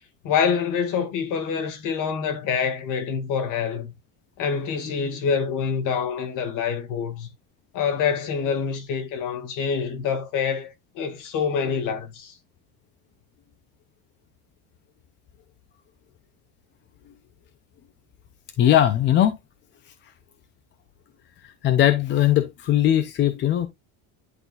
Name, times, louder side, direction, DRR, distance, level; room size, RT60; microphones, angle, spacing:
voice 1, 0.2-3.9 4.4-7.3 7.7-12.4, left 6 dB, 45° left, 2.0 m, -26 dB
voice 2, 18.6-19.3 21.6-23.7, left 12 dB, 25° left, 0.5 m, -19 dB
10.5 x 4.0 x 2.4 m
cardioid pair, 155°, 43 cm